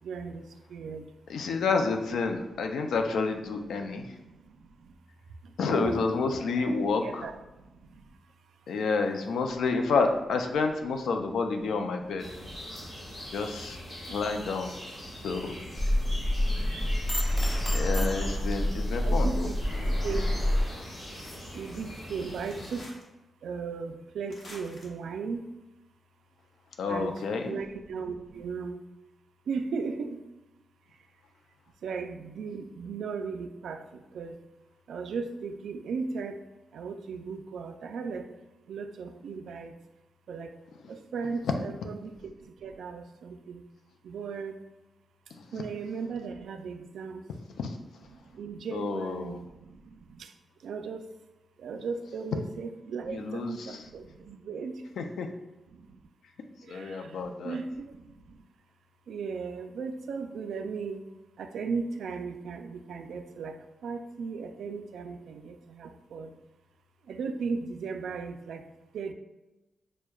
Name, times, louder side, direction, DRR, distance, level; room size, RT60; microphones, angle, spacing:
voice 1, 0.0-1.0 3.7-4.9 5.4-6.0 6.6-6.7 7.0-7.4 7.6-8.0 12.3-13.2 15.1-15.3 16.0-16.4 18.5-18.6 19.0-20.3 21.5-23.0 23.4-25.4 26.9-28.8 29.5-30.3 31.8-34.4 34.9-36.5 36.7-38.3 38.7-39.8 40.3-40.5 40.9-43.6 44.0-44.6 45.5-47.2 48.1-50.3 50.6-51.1 51.6-54.8 55.7-56.0 56.6-58.4 59.1-61.0 61.4-66.3 67.1-68.6 68.9-69.1, right 5 dB, 75° right, 7 dB, 0.3 m, -37 dB
voice 2, 1.3-4.2 5.6-7.3 8.7-12.3 13.3-13.8 14.1-14.7 15.2-15.5 17.7-19.5 26.8-27.6 45.3-45.5 47.6-47.8 48.7-49.4 53.1-53.8 55.0-55.3 56.7-57.6, left 4 dB, 85° left, 5 dB, 0.4 m, -29 dB
sound 1, 12.2-22.8, equal, 30° left, 1.3 m, -42 dB
sound 2, 15.8-20.6, left 1 dB, ahead, 0.4 m, -27 dB
sound 3, 17.2-18.7 19.6-21.1 22.5-23.0 24.3-24.9, left 1 dB, 55° left, 0.7 m, -42 dB
6.0 x 2.1 x 2.2 m, 1.0 s
wide cardioid pair, 155°, 0 cm